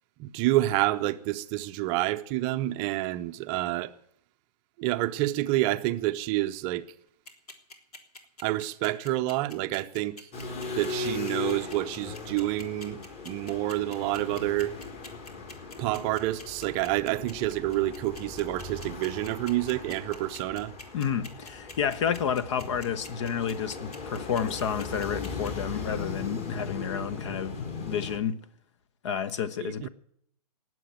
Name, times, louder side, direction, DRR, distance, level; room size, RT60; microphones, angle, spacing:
voice 1, 0.2-3.9 4.8-6.8 8.4-10.3 10.8-13.0 13.3-14.8 15.8-20.7 29.6-29.9, right 16 dB, 25° right, 0.7 m, -28 dB
sound 1, 7.3-25.5, left 3 dB, 65° left, 3.3 m, -45 dB
sound 2, 10.3-28.2, left 4 dB, 30° left, 3.2 m, -38 dB
voice 2, 20.9-28.4 29.0-29.9, left 8 dB, 45° left, 1.1 m, -30 dB
19.0 x 7.8 x 9.2 m
figure-of-eight pair, 125°, 21 cm